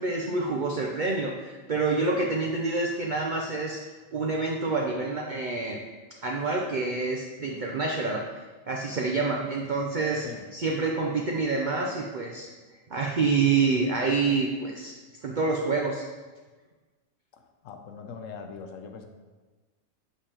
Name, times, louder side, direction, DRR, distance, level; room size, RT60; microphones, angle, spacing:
voice 1, 0.0-3.8 4.1-5.8 6.2-10.3 10.5-12.5 12.9-16.1, right 4 dB, 65° right, 0 dB, 0.4 m, -27 dB
voice 2, 17.3-19.1, left 5 dB, 70° left, 5 dB, 0.9 m, -41 dB
6.9 x 5.1 x 2.9 m, 1.3 s
omnidirectional pair, 1.5 m